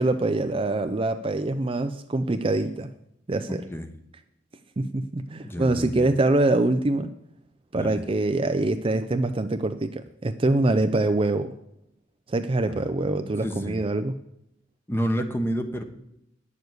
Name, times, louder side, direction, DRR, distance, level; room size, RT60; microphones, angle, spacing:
voice 1, 0.0-2.9 3.3-3.6 4.8-7.1 7.7-11.5 12.3-14.1, right 2 dB, 30° right, 8 dB, 0.5 m, -24 dB
voice 2, 3.5-3.9 5.4-6.1 7.8-8.0 13.4-13.8 14.9-15.8, equal, 10° left, 6 dB, 1.1 m, -29 dB
9.6 x 6.9 x 7.9 m, 0.80 s
head